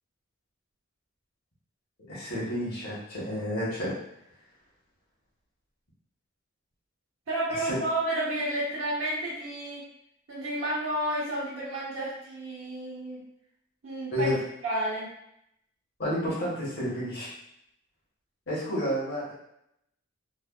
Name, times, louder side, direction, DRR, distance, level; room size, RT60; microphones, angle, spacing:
voice 1, 2.1-3.9 7.7-7.8 14.1-14.3 16.0-17.3 18.5-19.3, equal, 55° left, -7 dB, 1.2 m, -30 dB
voice 2, 7.3-9.8 10.3-13.2 13.8-14.3 14.6-15.1, right 1 dB, 85° right, -8 dB, 0.9 m, -31 dB
3.2 x 2.2 x 2.4 m, 0.77 s
head